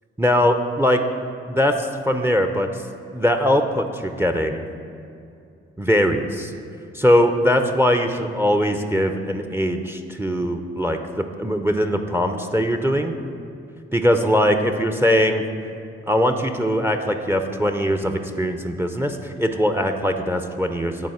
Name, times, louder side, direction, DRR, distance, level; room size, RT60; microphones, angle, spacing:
voice 1, 0.2-1.0 1.5-2.7 3.1-4.6 5.8-6.5 6.9-13.1 13.9-15.4 16.1-21.1, equal, 5° right, 7 dB, 0.6 m, -21 dB
9.4 x 4.2 x 5.6 m, 2.5 s
hypercardioid pair, 40°, 30 cm